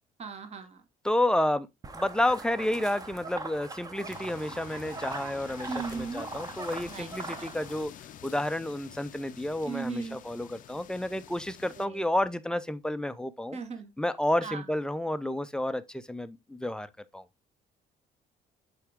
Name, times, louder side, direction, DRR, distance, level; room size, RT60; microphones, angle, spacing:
voice 1, 0.2-0.8 5.7-6.2 6.9-7.1 7.4-7.5 9.6-10.2 11.8-12.0 13.5-13.9 14.4-14.6, right 5 dB, 40° right, 1.3 m, -37 dB
voice 2, 1.0-1.7 1.9-7.9 8.2-13.6 14.0-17.2, left 1 dB, 5° left, 0.5 m, -30 dB
sound 1, 1.8-7.8, right 3 dB, 20° right, 0.9 m, -41 dB
sound 2, 4.1-11.9, left 11 dB, 50° left, 0.5 m, -48 dB
8.0 x 3.5 x 3.5 m
cardioid pair, 110°, 17 cm